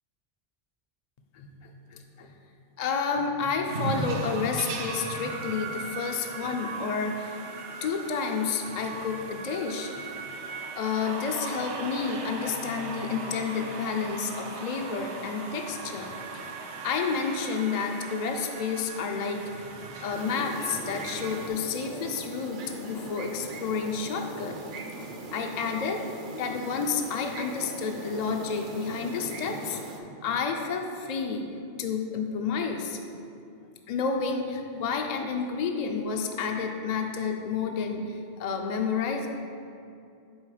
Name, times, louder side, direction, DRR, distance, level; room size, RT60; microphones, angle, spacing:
voice 1, 1.3-2.3 2.8-7.4 7.8-10.3 10.8-31.5 31.8-33.0 33.9-39.3, left 5 dB, 55° left, 3 dB, 0.5 m, -30 dB
sound 1, 3.7-21.5, right 3 dB, 90° right, 1.0 m, -38 dB
sound 2, 20.1-30.0, right 3 dB, 55° right, 0.7 m, -41 dB
7.2 x 3.9 x 4.9 m, 2.5 s
omnidirectional pair, 1.1 m